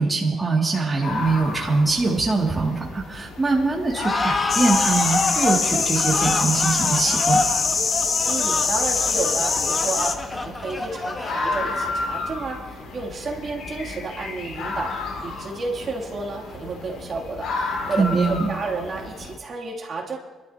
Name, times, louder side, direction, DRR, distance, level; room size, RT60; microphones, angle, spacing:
voice 1, 0.0-7.4 18.0-18.5, right 3 dB, 20° right, -3 dB, 2.4 m, -23 dB
sound 1, 1.0-19.3, left 3 dB, 80° left, 2.8 m, -33 dB
sound 2, 4.0-11.9, left 2 dB, 25° left, 1.4 m, -27 dB
sound 3, 4.5-10.1, left 5 dB, 50° left, 1.1 m, -23 dB
voice 2, 8.3-20.2, right 3 dB, 50° right, -3 dB, 2.8 m, -31 dB
25.0 x 12.5 x 2.9 m, 1.3 s
cardioid pair, 90°, 0 cm